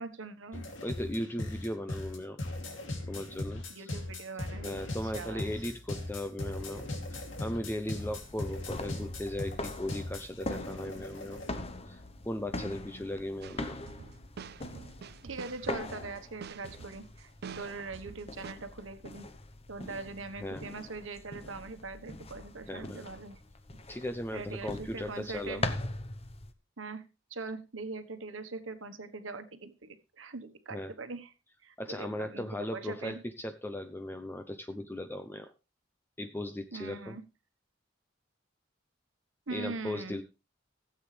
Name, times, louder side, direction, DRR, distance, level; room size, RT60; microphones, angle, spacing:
voice 1, 0.0-0.6 3.7-5.5 15.2-19.3 19.7-23.4 24.3-25.7 26.8-27.0 27.3-29.9 30.2-31.3 31.6-33.2 36.7-37.2 39.5-40.2, right 3 dB, 90° right, 9 dB, 1.3 m, -42 dB
sound 1, 0.5-11.6, left 1 dB, 80° left, 2.8 m, -39 dB
voice 2, 0.8-2.4 3.1-3.9 4.6-11.4 11.9-13.8 20.4-20.7 22.7-23.1 23.9-25.6 30.7-30.9 31.8-35.5 36.2-37.2 39.5-40.2, left 1 dB, 10° left, 8 dB, 0.6 m, -37 dB
sound 2, 8.0-26.5, left 2 dB, 30° left, 0.9 m, -42 dB
sound 3, 13.4-18.5, right 6 dB, 55° right, 0.5 m, -47 dB
16.0 x 8.0 x 3.3 m, 0.29 s
head